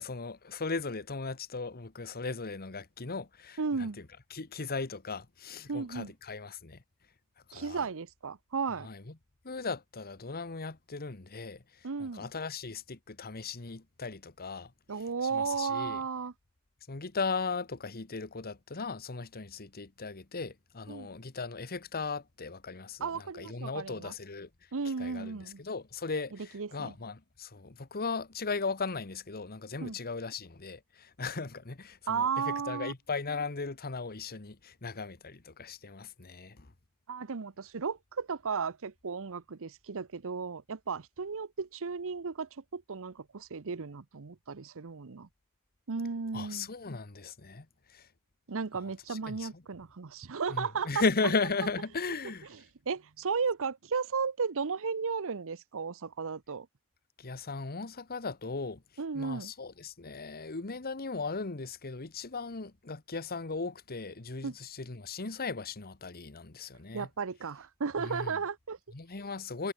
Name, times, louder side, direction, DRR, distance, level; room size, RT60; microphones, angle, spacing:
voice 1, 0.0-3.6 4.3-6.8 7.5-7.9 8.8-9.1 9.4-14.7 15.3-16.0 16.9-24.5 25.0-36.7 46.3-48.1 48.7-48.8 49.1-49.6 50.5-52.5 57.2-58.8 59.1-67.1 68.0-68.3 68.9-69.7, left 4 dB, 45° left, 1.3 m, -37 dB
voice 2, 3.6-4.0 5.7-6.1 7.5-8.9 11.8-12.3 14.9-16.3 20.9-21.1 23.0-24.1 24.7-25.6 26.3-26.9 29.8-30.0 32.1-32.9 37.1-45.3 45.9-46.7 48.5-51.0 52.5-52.6 52.9-56.7 59.0-59.5 64.4-64.5 66.9-68.8, right 5 dB, 65° right, 0.8 m, -34 dB
head